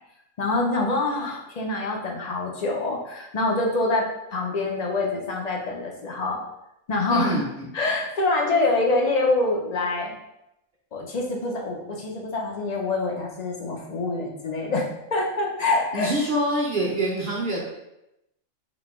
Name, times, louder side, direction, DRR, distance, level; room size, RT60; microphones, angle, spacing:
voice 1, 0.4-4.1 4.3-6.4 6.9-7.4 7.7-10.1 10.9-16.1, left 2 dB, 45° left, 0 dB, 0.6 m, -25 dB
voice 2, 7.1-7.7 15.9-17.6, right 1 dB, 45° right, -4 dB, 0.9 m, -25 dB
3.8 x 2.8 x 3.6 m, 0.86 s
omnidirectional pair, 1.4 m